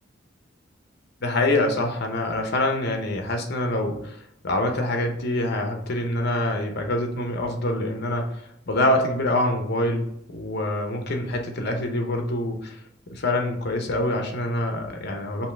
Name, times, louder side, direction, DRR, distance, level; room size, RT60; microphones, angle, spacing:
voice 1, 1.2-4.2 4.4-8.3 8.7-12.8 13.1-15.5, left 1 dB, 55° left, 3 dB, 0.8 m, -25 dB
5.5 x 2.8 x 3.4 m, 0.75 s
head